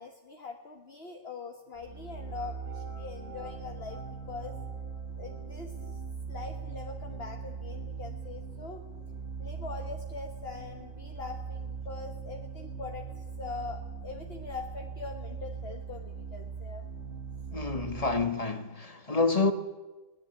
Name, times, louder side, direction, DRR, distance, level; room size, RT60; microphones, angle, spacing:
voice 1, 0.0-4.6 5.2-6.0 6.3-8.8 9.4-16.8, left 4 dB, 45° left, 1.7 m, -42 dB
sound 1, 1.8-18.2, right 5 dB, 55° right, 3.3 m, -40 dB
voice 2, 17.5-19.5, left 3 dB, 25° left, 1.4 m, -28 dB
21.5 x 19.0 x 8.9 m
omnidirectional pair, 1.5 m